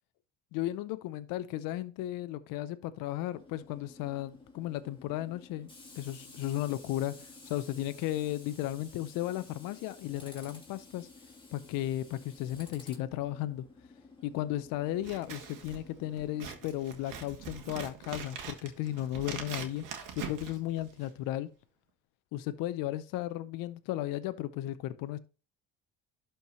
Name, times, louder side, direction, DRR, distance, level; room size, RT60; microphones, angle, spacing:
voice 1, 0.5-5.7 6.0-11.1 11.5-13.7 14.2-19.9 20.1-21.5 22.3-25.2, left 14 dB, 70° left, 0.7 m, -35 dB
Tools, 3.3-17.7, left 3 dB, 15° left, 3.2 m, -54 dB
Scissors, 15.0-21.2, right 7 dB, 65° right, 1.9 m, -43 dB
11.5 x 4.6 x 3.0 m
supercardioid pair, 75°, 34 cm